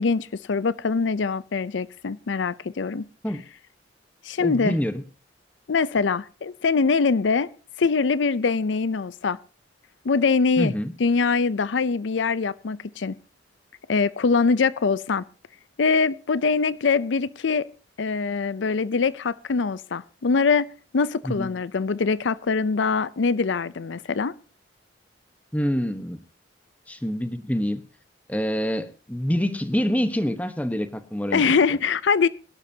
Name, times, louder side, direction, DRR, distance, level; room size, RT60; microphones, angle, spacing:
voice 1, 0.0-3.1 4.2-4.7 5.7-7.5 7.8-9.4 10.0-10.7 11.0-13.2 13.9-15.2 15.8-17.7 18.0-20.7 20.9-24.3 31.3-32.3, left 4 dB, 80° left, 0.5 m, -23 dB
voice 2, 4.4-5.0 10.6-10.9 21.2-21.5 25.5-26.2 26.9-27.8 28.3-31.5, equal, 10° left, 1.1 m, -26 dB
23.0 x 11.5 x 2.8 m
head